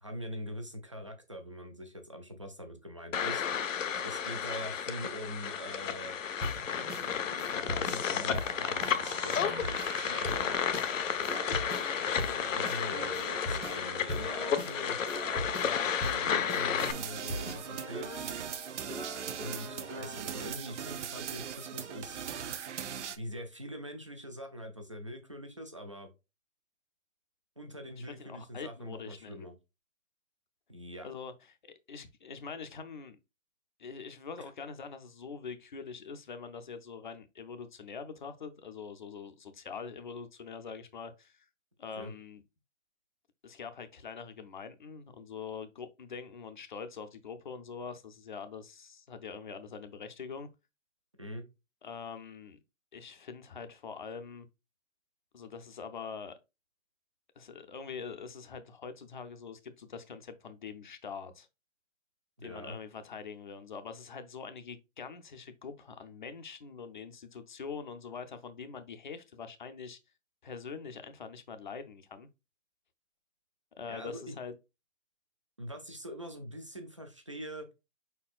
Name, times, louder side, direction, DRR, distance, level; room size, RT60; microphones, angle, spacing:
voice 1, 0.0-3.4 4.0-6.2 7.5-10.6 12.6-15.0 16.1-18.1 19.4-22.2 23.2-26.1 27.6-29.5 30.7-31.1 42.0-42.1 51.2-51.5 62.4-62.8 73.9-74.4 75.6-77.7, equal, 25° right, 0.4 m, -43 dB
sound 1, 3.1-16.9, left 8 dB, 70° left, 0.7 m, -32 dB
sound 2, 6.4-20.2, equal, 5° right, 0.8 m, -40 dB
voice 2, 15.5-15.9 28.0-29.4 31.0-33.2 33.8-41.5 41.8-42.4 43.4-50.5 51.8-52.6 52.9-54.5 55.3-56.3 57.4-61.5 62.4-70.0 70.4-72.3 73.8-74.5, left 5 dB, 40° left, 0.5 m, -44 dB
sound 3, 16.8-23.2, right 8 dB, 60° right, 0.7 m, -40 dB
5.1 x 4.3 x 2.4 m
hypercardioid pair, 165°, 40 cm